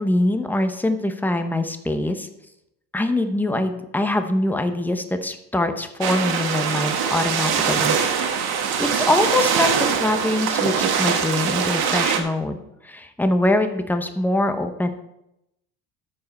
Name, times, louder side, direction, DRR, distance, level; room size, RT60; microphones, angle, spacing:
voice 1, 0.0-2.3 2.9-8.0 8.3-14.9, left 1 dB, 5° left, 8 dB, 0.8 m, -23 dB
sound 1, 6.0-12.2, right 7 dB, 55° right, 1.5 m, -22 dB
13.5 x 4.8 x 4.2 m, 0.84 s
supercardioid pair, 105°, 43 cm